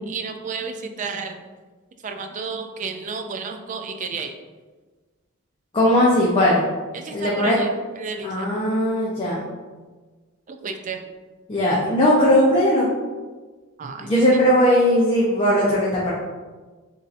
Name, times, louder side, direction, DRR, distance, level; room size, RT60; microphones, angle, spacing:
voice 1, 0.1-1.4 2.0-4.3 6.9-8.7 10.5-11.0 13.8-14.4, right 5 dB, 35° right, 5 dB, 0.4 m, -32 dB
voice 2, 5.7-6.6 7.1-7.6 8.2-9.4 11.5-12.9 14.0-16.1, equal, 25° left, -6 dB, 0.7 m, -18 dB
7.3 x 2.6 x 2.5 m, 1.3 s
head